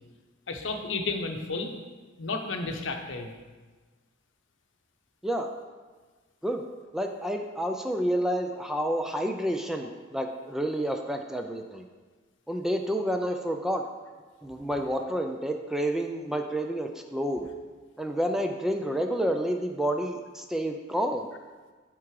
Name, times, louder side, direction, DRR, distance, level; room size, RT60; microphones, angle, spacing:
voice 1, 0.5-1.7 2.2-3.3, left 3 dB, 65° left, 4 dB, 0.8 m, -32 dB
voice 2, 6.9-11.8 12.5-13.8 14.4-17.5 18.0-21.3, equal, ahead, 4 dB, 0.4 m, -29 dB
10.5 x 3.7 x 4.7 m, 1.4 s
head